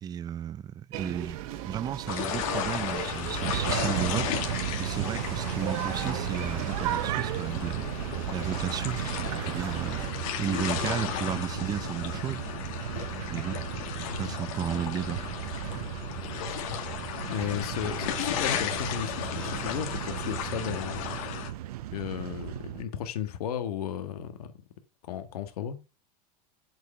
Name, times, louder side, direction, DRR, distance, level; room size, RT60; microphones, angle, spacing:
voice 1, 0.0-7.9 8.3-10.0 10.4-12.4 13.3-13.6 14.1-15.2, right 9 dB, 20° right, 0.5 m, -34 dB
sound 1, 0.9-10.1, right 12 dB, 70° right, 1.2 m, -36 dB
sound 2, 2.1-21.5, left 9 dB, 65° left, 2.2 m, -35 dB
sound 3, 3.4-22.8, right 13 dB, 90° right, 0.7 m, -36 dB
voice 2, 17.3-21.1 21.9-24.5 25.1-25.8, left 9 dB, 90° left, 1.5 m, -34 dB
8.2 x 4.8 x 7.0 m
supercardioid pair, 140°, 19 cm